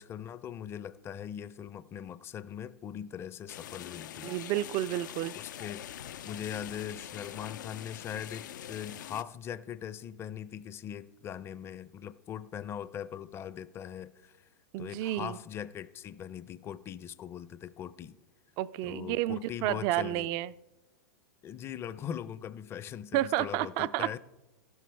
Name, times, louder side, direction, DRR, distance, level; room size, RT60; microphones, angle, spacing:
voice 1, 0.0-4.3 5.3-5.8 6.2-14.5 14.8-18.2 18.8-20.3 21.4-24.2, left 9 dB, 25° left, 0.5 m, -41 dB
sound 1, 3.5-9.2, left 11 dB, 80° left, 0.4 m, -44 dB
voice 2, 4.2-5.3 14.7-15.4 18.6-20.5 23.1-24.2, right 15 dB, 40° right, 0.3 m, -31 dB
14.5 x 12.5 x 3.4 m
hypercardioid pair, 120°, 10 cm